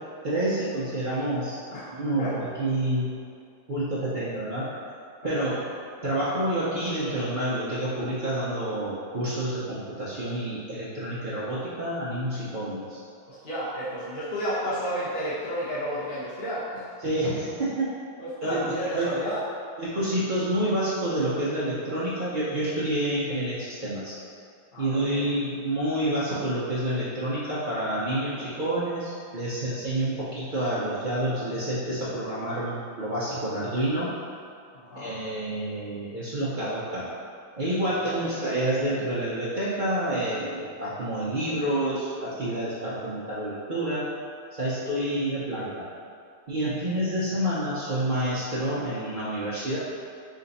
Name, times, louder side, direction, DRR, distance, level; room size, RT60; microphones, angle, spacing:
voice 1, 0.2-1.6 1.9-3.1 3.7-4.7 5.2-5.7 6.0-13.0 17.0-17.9 18.4-19.2 19.8-24.1 24.8-34.1 35.0-37.1 37.6-44.0 44.5-45.9 46.5-49.8, right 1 dB, 75° right, -10 dB, 0.4 m, -28 dB
voice 2, 13.3-16.8 18.2-19.4 24.7-25.3 28.1-28.4 34.7-35.1 37.8-38.3 44.6-44.9, equal, 40° left, -11 dB, 0.8 m, -32 dB
5.0 x 2.5 x 4.0 m, 2.4 s
omnidirectional pair, 1.9 m